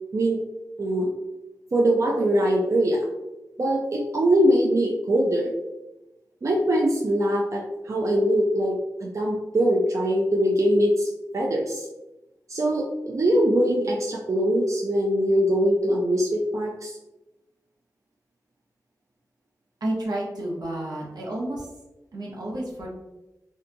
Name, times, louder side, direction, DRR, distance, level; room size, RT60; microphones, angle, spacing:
voice 1, 1.7-3.0 3.6-5.5 6.4-11.1 11.3-11.9 12.5-17.0, equal, 50° right, -2 dB, 0.4 m, -22 dB
voice 2, 19.8-21.7 22.1-22.9, right 1 dB, 80° right, -3 dB, 0.7 m, -30 dB
2.7 x 2.2 x 2.5 m, 0.99 s
wide cardioid pair, 85°, 7 cm